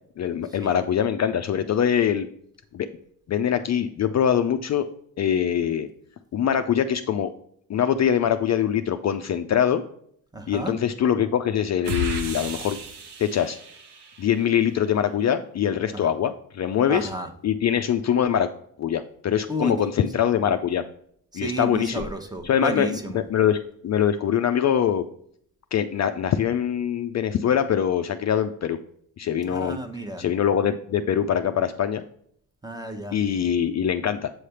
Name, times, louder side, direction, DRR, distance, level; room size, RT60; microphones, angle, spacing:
voice 1, 0.2-2.3 2.7-2.9 3.3-4.9 5.2-5.9 6.3-7.3 7.7-9.8 10.5-12.8 13.2-13.6 14.2-17.1 17.4-18.5 18.8-20.8 21.3-22.1 22.4-23.6 23.8-25.1 25.7-28.8 29.2-29.8 30.2-32.0 33.1-34.3, left 9 dB, 45° left, 9 dB, 0.4 m, -23 dB
voice 2, 10.3-10.7 15.9-16.0 16.9-17.3 19.5-19.7 21.3-23.2 29.5-30.2 32.6-33.2, right 1 dB, 10° right, 6 dB, 0.8 m, -31 dB
sound 1, 11.8-14.6, equal, 80° right, 1.2 m, -33 dB
7.7 x 3.3 x 5.6 m, 0.65 s
cardioid pair, 120°, 39 cm